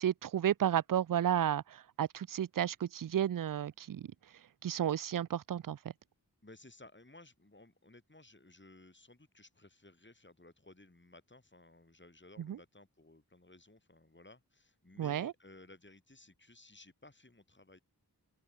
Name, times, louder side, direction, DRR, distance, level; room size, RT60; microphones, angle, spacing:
voice 1, 0.0-4.1 4.6-5.8 12.4-12.6 15.0-15.3, right 10 dB, 55° right, 0.5 m, -32 dB
voice 2, 6.4-17.8, left 2 dB, 30° left, 4.1 m, -58 dB
open air
wide cardioid pair, 50°, 39 cm